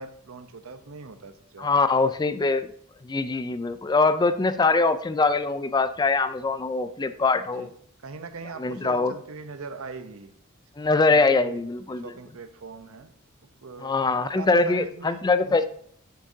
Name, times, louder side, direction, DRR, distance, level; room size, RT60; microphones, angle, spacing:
voice 1, 0.0-1.7 7.5-7.7 8.0-10.3 11.1-11.6 11.9-13.1 13.6-13.9 14.2-15.7, right 4 dB, 80° right, 0.7 m, -41 dB
voice 2, 1.6-2.7 3.0-7.7 8.6-9.1 10.8-12.1 13.8-15.7, left 3 dB, 20° left, 0.4 m, -23 dB
9.7 x 6.5 x 2.7 m
head